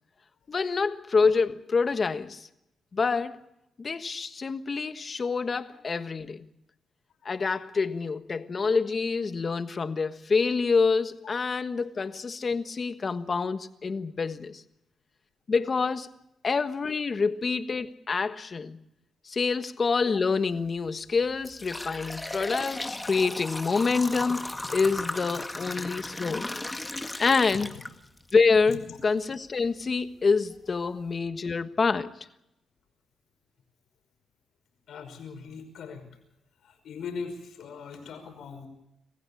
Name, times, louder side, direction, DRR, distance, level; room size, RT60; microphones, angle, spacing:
voice 1, 0.5-2.5 2.9-3.4 3.8-6.5 7.2-14.6 15.5-16.1 16.4-18.8 19.2-26.5 27.2-27.7 28.3-32.1, left 4 dB, 40° left, 1.4 m, -27 dB
sound 1, 20.5-20.7 21.2-28.3 28.8-28.9 29.7-29.8 30.3-30.4 30.9-31.1, left 2 dB, 15° left, 1.8 m, -36 dB
voice 2, 34.9-36.1 36.6-38.7, left 5 dB, 80° left, 5.5 m, -40 dB
26.5 x 15.0 x 8.5 m
cardioid pair, 75°, 0 cm